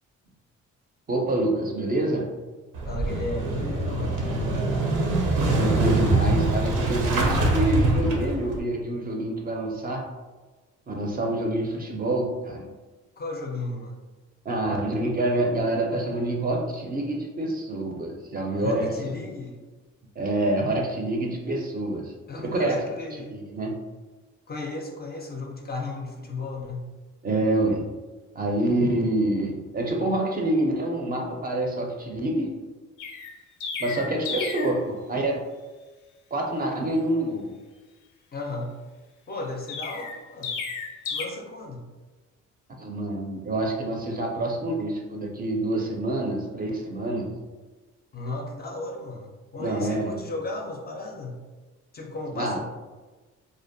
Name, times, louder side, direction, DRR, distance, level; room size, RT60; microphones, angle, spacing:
voice 1, 1.1-2.3 5.5-10.1 10.9-12.7 14.4-19.1 20.2-22.1 22.4-22.8 23.3-23.7 27.2-27.8 28.3-32.5 33.8-35.4 36.3-37.5 42.8-47.3 49.6-50.2 52.3-52.6, right 1 dB, 30° right, 0 dB, 0.4 m, -27 dB
Motorcycle / Engine starting, 2.7-8.6, right 2 dB, 80° right, 0.6 m, -24 dB
voice 2, 2.9-4.9 13.2-14.0 18.5-19.6 22.3-23.4 24.5-26.9 38.3-38.7 39.3-40.5 41.1-41.8 48.1-51.4 51.9-52.6, left 2 dB, 35° left, 1 dB, 0.4 m, -34 dB
Chirp tweet, 33.0-34.8 39.7-41.3, left 5 dB, 85° left, 0.5 m, -33 dB
2.5 x 2.0 x 2.6 m, 1.3 s
cardioid pair, 90°, 30 cm